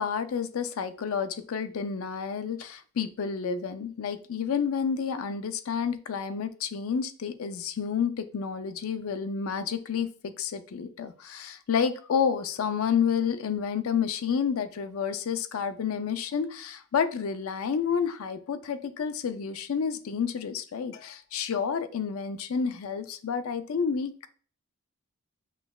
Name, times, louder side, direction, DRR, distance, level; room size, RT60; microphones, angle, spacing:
voice 1, 0.0-24.3, left 6 dB, 70° left, 10 dB, 0.4 m, -30 dB
5.5 x 3.1 x 2.3 m, 0.42 s
head